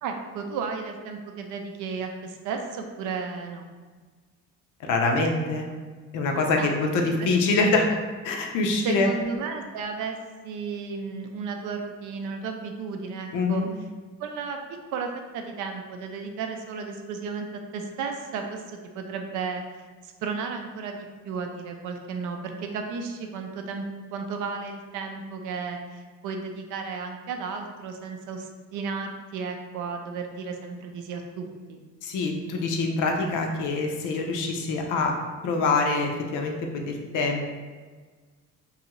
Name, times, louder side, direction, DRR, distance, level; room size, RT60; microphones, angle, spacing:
voice 1, 0.0-3.7 6.6-6.7 7.2-7.3 7.5-7.8 8.8-10.2 10.4-13.6 14.2-14.6 14.9-17.5 17.7-19.6 20.0-23.9 24.1-31.8, right 5 dB, 85° right, 4 dB, 0.5 m, -33 dB
voice 2, 4.8-5.7 6.1-7.9 8.2-9.1 13.3-13.7 32.0-35.1 35.4-37.5, left 3 dB, 85° left, 2 dB, 0.5 m, -25 dB
2.6 x 2.3 x 2.9 m, 1.4 s
cardioid pair, 90°, 30 cm